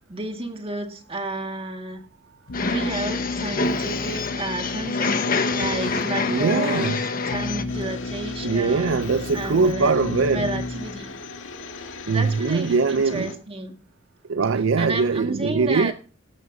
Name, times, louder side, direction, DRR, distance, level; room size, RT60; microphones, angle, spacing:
voice 1, 0.1-2.0 2.6-5.2 5.5-9.0 9.3-9.9 10.3-11.1 12.1-13.8 14.8-15.9, right 2 dB, 30° right, 1.8 m, -31 dB
Keyboard (musical), 2.5-11.2, left 3 dB, 65° left, 1.2 m, -31 dB
sound 1, 2.5-7.6, left 4 dB, 50° left, 1.3 m, -27 dB
voice 2, 6.3-7.0 8.4-10.5 12.1-13.3 14.3-15.9, right 4 dB, 85° right, 0.5 m, -22 dB
sound 2, 7.7-13.4, left 4 dB, 80° left, 2.0 m, -39 dB
18.5 x 11.0 x 2.7 m
head